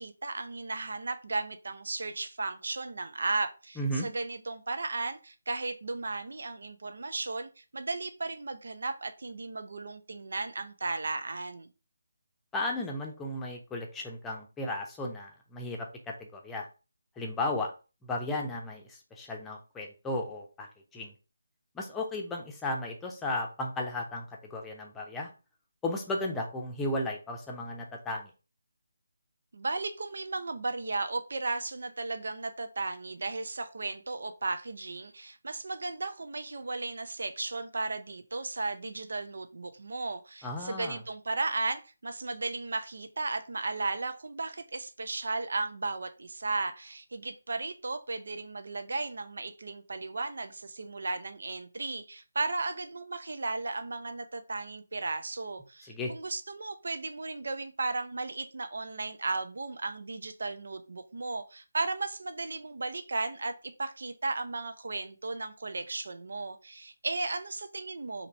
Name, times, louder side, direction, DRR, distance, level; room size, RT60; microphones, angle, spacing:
voice 1, 0.0-11.7 29.5-68.3, right 3 dB, 60° right, 9 dB, 0.7 m, -35 dB
voice 2, 3.8-4.1 12.5-16.7 17.2-17.7 18.0-21.1 21.7-25.3 25.8-28.3 40.4-41.0 55.9-56.1, left 1 dB, 10° left, 0 dB, 0.8 m, -35 dB
3.9 x 2.9 x 4.4 m, 0.32 s
figure-of-eight pair, 150°, 0 cm